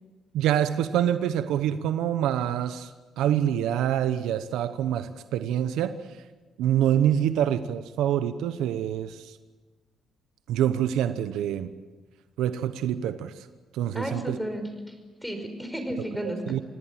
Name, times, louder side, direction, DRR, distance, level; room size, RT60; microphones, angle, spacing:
voice 1, 0.3-2.9 3.2-5.9 6.6-9.4 10.5-11.7 12.4-13.5 13.7-14.4 16.5-16.6, right 10 dB, 90° right, 11 dB, 0.9 m, -26 dB
voice 2, 13.9-16.4, right 1 dB, ahead, 6 dB, 5.2 m, -33 dB
26.0 x 18.0 x 7.6 m, 1.3 s
cardioid pair, 90°, 0 cm